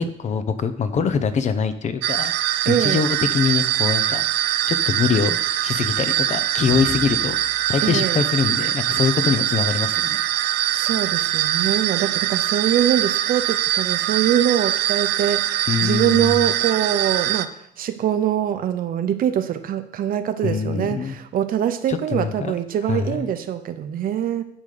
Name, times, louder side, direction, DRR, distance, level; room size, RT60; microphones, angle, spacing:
voice 1, 0.0-2.3 2.7-4.2 4.7-7.4 7.7-10.4 15.7-16.4 20.4-21.2 21.9-22.5 22.9-23.3, left 6 dB, 45° left, 11 dB, 0.8 m, -23 dB
sound 1, 2.0-17.5, right 13 dB, 85° right, 0.5 m, -23 dB
voice 2, 2.7-3.0 7.8-8.2 10.7-17.5 17.8-24.4, right 10 dB, 55° right, 9 dB, 0.8 m, -23 dB
sound 2, 6.7-9.3, left 5 dB, 5° left, 0.8 m, -43 dB
10.0 x 3.9 x 6.7 m, 0.71 s
cardioid pair, 110°, 17 cm